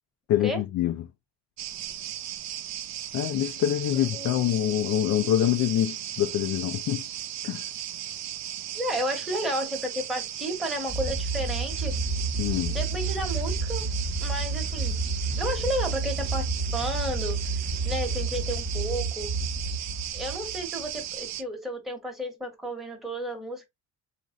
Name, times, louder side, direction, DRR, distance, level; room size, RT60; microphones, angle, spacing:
voice 1, 0.3-1.1 3.1-7.0 7.4-7.6 12.4-12.8, left 12 dB, 65° left, 0.5 m, -25 dB
sound 1, 1.6-21.4, right 11 dB, 60° right, 0.5 m, -36 dB
voice 2, 3.9-4.3 8.7-11.9 12.7-13.8 14.2-15.0 15.4-17.4 17.8-19.3 20.1-23.6, equal, ahead, 1.1 m, -32 dB
sound 2, 10.9-20.9, right 3 dB, 30° right, 1.1 m, -30 dB
3.0 x 2.5 x 2.5 m
cardioid pair, 90°, 30 cm